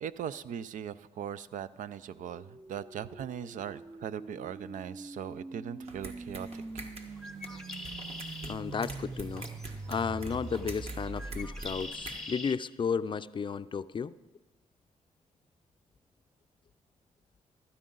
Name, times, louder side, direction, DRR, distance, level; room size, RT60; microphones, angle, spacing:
voice 1, 0.0-6.6, right 9 dB, 90° right, 15 dB, 0.4 m, -39 dB
sound 1, 2.1-12.2, right 3 dB, 20° right, 0.4 m, -44 dB
sound 2, 5.8-12.2, right 2 dB, 50° right, 1.6 m, -47 dB
Bird, 7.1-12.6, left 2 dB, 5° left, 0.8 m, -45 dB
voice 2, 8.4-9.5 9.9-14.2, left 6 dB, 40° left, 14 dB, 0.4 m, -33 dB
14.5 x 12.5 x 3.9 m, 1.2 s
cardioid pair, 85°, 13 cm